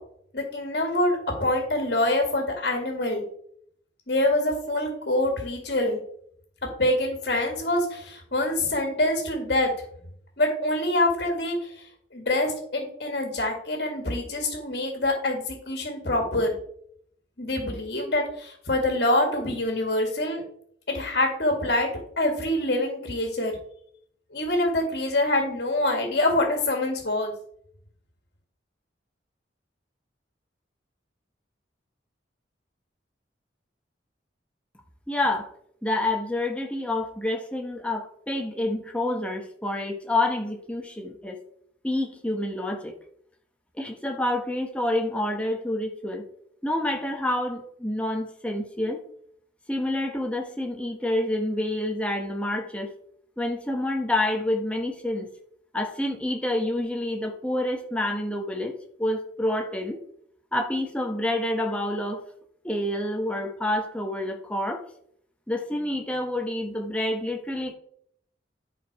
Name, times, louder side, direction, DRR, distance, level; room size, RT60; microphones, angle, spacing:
voice 1, 0.3-3.2 4.1-6.0 6.8-9.7 10.4-11.9 12.1-16.6 17.4-20.4 20.9-21.9 22.2-23.5 24.3-27.3, left 1 dB, 55° left, 2 dB, 2.1 m, -25 dB
voice 2, 35.1-35.5 35.8-41.4 41.8-42.9 43.8-46.3 46.6-49.0 49.7-52.9 53.4-55.3 55.7-58.7 59.0-60.0 60.5-62.2 62.6-64.8 65.5-67.7, left 1 dB, 5° left, 2 dB, 1.2 m, -28 dB
11.0 x 5.2 x 4.8 m, 0.66 s
head